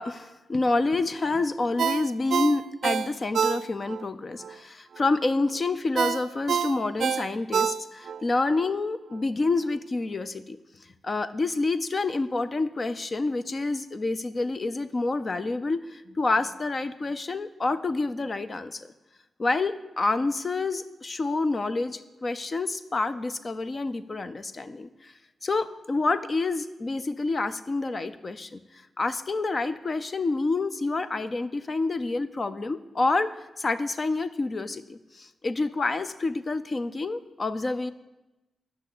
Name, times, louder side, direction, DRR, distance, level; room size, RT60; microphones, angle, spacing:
voice 1, 0.0-10.6 11.0-18.9 19.4-25.1 25.4-28.6 29.0-37.9, left 3 dB, 35° left, 12 dB, 0.5 m, -28 dB
Ringtone, 1.8-4.0 4.4-4.5 6.0-8.2 8.6-8.7, right 7 dB, 70° right, 0.5 m, -27 dB
11.0 x 6.0 x 8.4 m, 1.0 s
wide cardioid pair, 140°, 0 cm